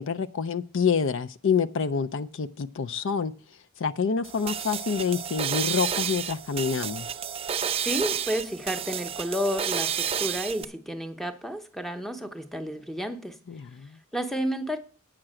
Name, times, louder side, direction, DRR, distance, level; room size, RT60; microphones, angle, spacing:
voice 1, 0.0-3.3 3.8-7.1 13.5-14.0, left 6 dB, 60° left, 0.5 m, -27 dB
sound 1, 4.2-10.6, right 8 dB, 25° right, 0.4 m, -31 dB
voice 2, 7.9-13.4 14.1-14.8, equal, ahead, 0.8 m, -31 dB
8.9 x 5.9 x 7.6 m
head